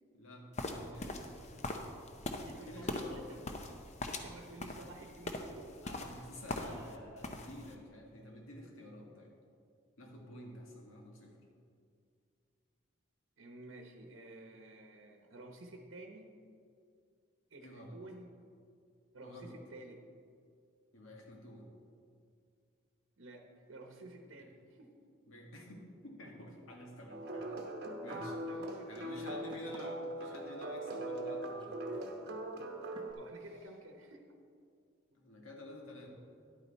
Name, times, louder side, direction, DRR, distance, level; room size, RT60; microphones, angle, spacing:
voice 1, 0.1-1.6 2.5-3.3 4.6-4.8 5.8-9.3 10.0-11.4 17.6-18.0 19.2-19.6 20.9-21.6 25.3-27.6 28.0-32.2 35.1-36.1, left 1 dB, 90° left, 0 dB, 1.8 m, -51 dB
sound 1, 0.6-7.0 7.2-7.7, left 2 dB, 35° left, 0.7 m, -41 dB
voice 2, 2.4-3.5 4.1-5.7 13.4-16.3 17.5-18.3 19.1-20.0 23.2-24.9 28.4-29.5 33.2-34.2, right 2 dB, 75° right, 3 dB, 0.9 m, -52 dB
sound 2, 27.1-33.1, right 1 dB, 50° right, 1.0 m, -41 dB
sound 3, 28.1-28.4 28.7-33.2, right 2 dB, 20° right, 0.8 m, -56 dB
10.5 x 8.8 x 4.2 m, 2.3 s
head